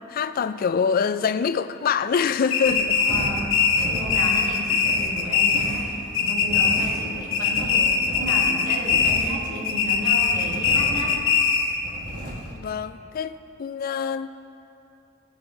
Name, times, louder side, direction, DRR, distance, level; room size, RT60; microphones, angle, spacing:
voice 1, 0.1-3.0 12.5-14.3, left 6 dB, 45° left, 12 dB, 0.3 m, -25 dB
sound 1, 2.5-5.9 6.1-7.0 7.3-9.4 9.6-11.8, left 6 dB, 70° left, 0.9 m, -21 dB
sound 2, 2.6-12.5, right 1 dB, 40° right, 1.7 m, -36 dB
voice 2, 3.0-5.9 6.2-11.2, equal, 60° right, -4 dB, 1.9 m, -33 dB
16.5 x 5.5 x 3.9 m, 2.8 s
head